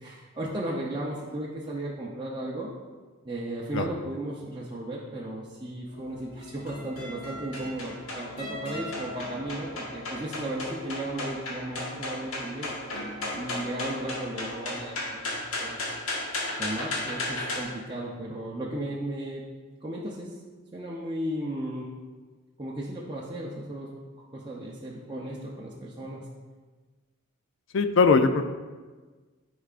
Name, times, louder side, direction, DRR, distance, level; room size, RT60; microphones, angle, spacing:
voice 1, 0.0-2.7 3.2-12.8 13.3-15.8 16.6-19.4 19.8-20.3 20.7-21.9 22.6-23.9 24.2-26.2, right 1 dB, 20° right, -5 dB, 0.6 m, -35 dB
hi knocks, 5.9-17.6, left 2 dB, 75° left, 1.4 m, -35 dB
voice 2, 27.7-28.4, left 4 dB, 60° left, 9 dB, 0.4 m, -20 dB
9.9 x 4.7 x 2.5 m, 1.4 s
head